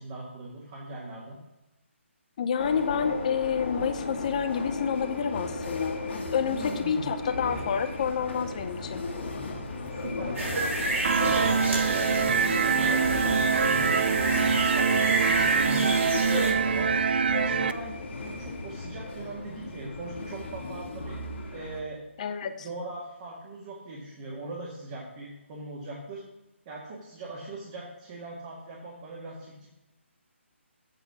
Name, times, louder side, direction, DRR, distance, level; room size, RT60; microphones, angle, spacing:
voice 1, 0.0-1.4 6.4-7.1 9.9-14.3 14.7-16.0 16.4-21.2 21.5-22.0 22.4-26.2 26.7-29.7, right 2 dB, 25° right, -5 dB, 1.8 m, -40 dB
voice 2, 2.4-9.0 22.2-22.7, left 7 dB, 35° left, 10 dB, 0.7 m, -29 dB
sound 1, 2.6-21.8, left 3 dB, 55° left, 1.9 m, -35 dB
sound 2, 10.3-16.5, right 2 dB, 75° right, 3.8 m, -30 dB
sound 3, 11.0-17.7, right 6 dB, 50° right, 0.5 m, -24 dB
8.3 x 6.5 x 6.0 m, 0.96 s
hypercardioid pair, 165°, 7 cm